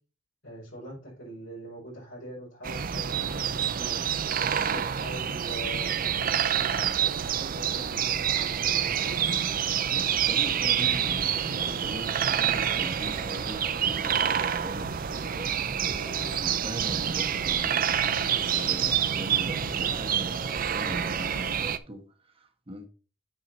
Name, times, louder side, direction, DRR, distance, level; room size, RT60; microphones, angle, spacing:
voice 1, 0.4-4.3 4.7-9.4, right 1 dB, 90° left, 5.0 m, -43 dB
sound 1, 2.6-21.8, right 8 dB, 50° right, 0.5 m, -27 dB
voice 2, 4.4-4.9 9.8-22.9, right 1 dB, 30° right, 1.4 m, -41 dB
sound 2, 10.7-21.6, left 1 dB, 50° left, 2.9 m, -44 dB
9.0 x 5.0 x 4.3 m
head